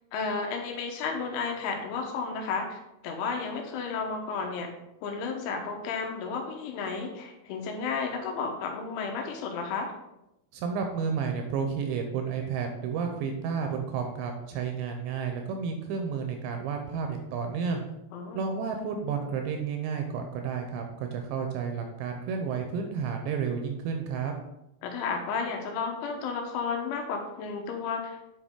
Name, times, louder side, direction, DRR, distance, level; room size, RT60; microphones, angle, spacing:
voice 1, 0.1-4.7 5.0-9.9 18.1-18.4 24.8-28.3, left 5 dB, 80° left, 2 dB, 3.4 m, -32 dB
voice 2, 10.5-17.9 18.3-24.3, right 6 dB, 80° right, 4 dB, 2.8 m, -31 dB
8.6 x 5.2 x 3.7 m, 0.88 s
omnidirectional pair, 5.6 m